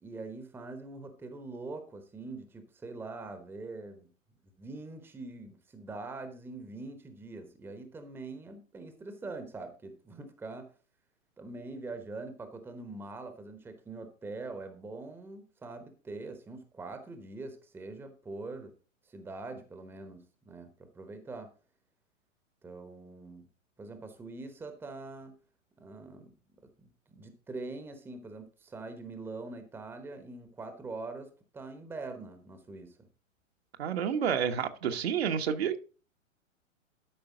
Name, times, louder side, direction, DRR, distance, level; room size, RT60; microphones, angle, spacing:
voice 1, 0.0-4.1 4.4-10.7 11.4-18.7 19.0-21.5 22.6-23.5 23.8-25.4 25.8-26.3 26.6-33.1, right 3 dB, 5° right, 1.0 m, -43 dB
voice 2, 33.8-35.8, right 8 dB, 50° right, 1.2 m, -29 dB
12.5 x 5.5 x 3.9 m
figure-of-eight pair, 110°, 40 cm